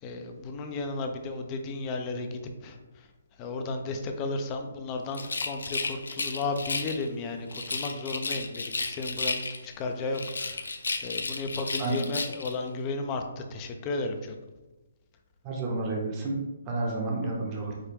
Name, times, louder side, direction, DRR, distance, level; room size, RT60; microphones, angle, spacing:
voice 1, 0.0-3.1 3.4-10.7 11.0-14.4, left 3 dB, 25° left, 5 dB, 0.4 m, -34 dB
Rattle, 5.1-7.0 7.5-9.8 10.1-12.6, left 3 dB, 85° left, 0.5 m, -33 dB
voice 2, 15.4-16.4 16.7-17.8, right 2 dB, 25° right, -2 dB, 0.7 m, -30 dB
4.8 x 2.2 x 3.4 m, 1.1 s
hypercardioid pair, 150°, 0 cm